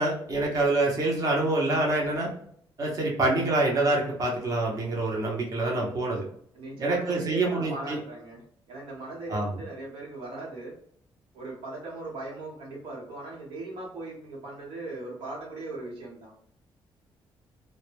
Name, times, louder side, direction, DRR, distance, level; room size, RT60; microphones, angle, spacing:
voice 1, 0.0-2.3 2.8-6.2 6.8-8.0 9.3-9.5, right 2 dB, 40° right, -2 dB, 0.7 m, -26 dB
voice 2, 6.5-8.4 8.7-10.7 11.3-16.3, right 2 dB, 85° right, -3 dB, 1.0 m, -39 dB
2.2 x 2.1 x 3.2 m, 0.62 s
cardioid pair, 115°, 9 cm